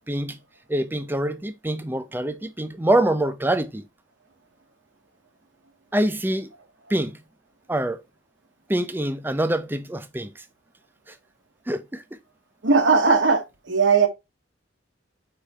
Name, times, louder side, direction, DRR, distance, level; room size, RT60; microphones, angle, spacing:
voice 1, 0.1-0.4 0.7-3.8 5.9-6.5 6.9-7.2 7.7-8.0 8.7-10.3 11.7-12.0, right 1 dB, 10° right, 0.5 m, -25 dB
voice 2, 12.6-14.1, right 4 dB, 75° right, 1.1 m, -18 dB
5.0 x 4.6 x 4.1 m
head